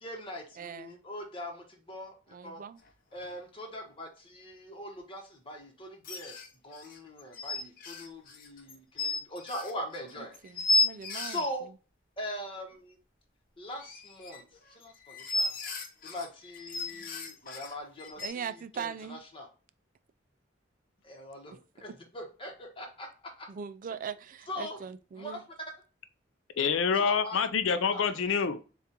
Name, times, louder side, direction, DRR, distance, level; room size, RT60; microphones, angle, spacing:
voice 1, 0.0-2.1 2.4-2.6 3.1-6.4 6.6-10.6 11.2-11.7 12.2-13.0 13.6-15.6 16.0-19.5 21.0-23.5 24.5-24.8 25.2-25.4 26.9-27.4 27.9-28.0, equal, 30° left, 1.1 m, -41 dB
voice 2, 0.6-1.0 2.3-2.8 10.4-11.5 18.2-19.2 23.5-25.4, right 7 dB, 45° right, 0.3 m, -40 dB
sound 1, 2.9-3.0 3.2-3.3 6.0-11.5 13.7-18.3, left 2 dB, 50° left, 0.7 m, -33 dB
voice 3, 26.6-28.6, left 6 dB, 90° left, 0.4 m, -27 dB
7.0 x 2.4 x 2.8 m
head